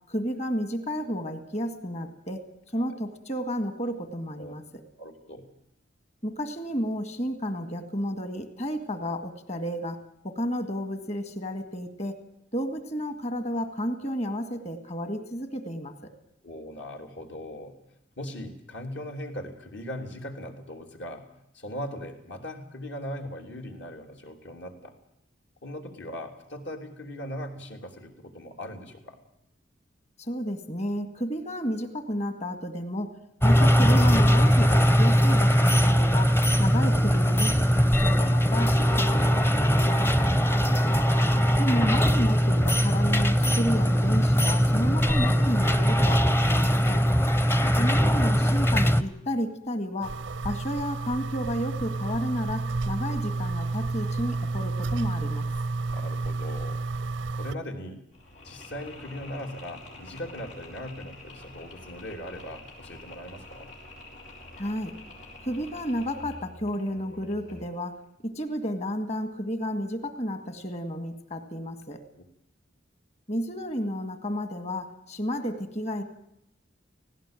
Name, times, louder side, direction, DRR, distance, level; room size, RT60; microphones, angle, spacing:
voice 1, 0.1-2.4 2.7-4.6 6.2-10.0 10.2-12.2 12.5-15.9 30.2-33.1 33.4-39.9 41.6-47.0 47.8-50.2 50.4-55.5 64.6-64.9 65.4-68.0 68.2-72.0 73.3-76.0, equal, 35° left, 9 dB, 2.0 m, -31 dB
voice 2, 5.0-5.5 16.4-17.8 18.2-25.0 25.6-29.2 39.7-40.7 47.3-47.5 55.9-56.8 57.4-58.0 58.4-63.7, equal, 70° left, 3 dB, 3.4 m, -39 dB
sound 1, 33.4-49.0, equal, 10° left, 0.8 m, -21 dB
sound 2, 50.0-57.5, right 3 dB, 90° right, 0.7 m, -30 dB
Mechanisms, 58.1-67.9, left 1 dB, 90° left, 6.2 m, -47 dB
18.5 x 17.0 x 9.1 m, 0.78 s
head